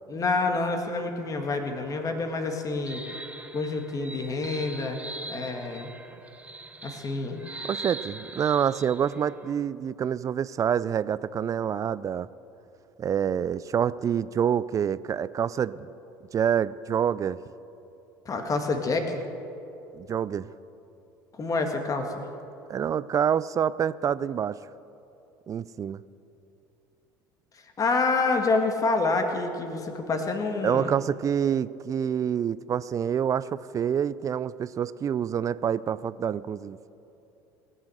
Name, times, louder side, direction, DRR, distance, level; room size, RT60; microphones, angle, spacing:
voice 1, 0.1-3.0 3.5-5.0 5.3-5.9 6.8-7.4 18.3-19.2 21.3-22.3 27.5-30.9, left 3 dB, 30° left, 5 dB, 1.8 m, -27 dB
sound 1, 1.6-9.5, right 2 dB, 10° right, 0.9 m, -42 dB
voice 2, 7.7-12.3 13.0-15.9 16.3-17.4 19.9-20.5 22.7-24.6 25.5-26.0 30.6-36.8, right 8 dB, 30° right, 18 dB, 0.4 m, -27 dB
18.5 x 6.3 x 7.9 m, 2.9 s
hypercardioid pair, 70°, 11 cm